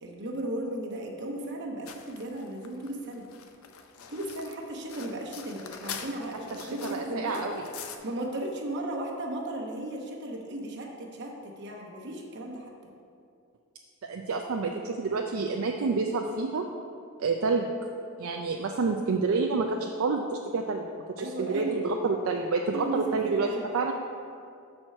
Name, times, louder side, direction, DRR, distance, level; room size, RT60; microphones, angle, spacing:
voice 1, 0.0-3.3 4.1-7.4 8.0-12.9 21.2-21.8 22.7-23.6, right 1 dB, 55° right, 0 dB, 1.0 m, -35 dB
sound 1, 1.9-8.0, left 7 dB, 75° left, 0.5 m, -44 dB
voice 2, 6.6-7.6 14.0-16.6 17.2-17.7 18.2-20.9 21.2-23.5 23.7-23.9, right 4 dB, 70° right, 2 dB, 0.4 m, -28 dB
6.2 x 4.4 x 6.5 m, 2.5 s
head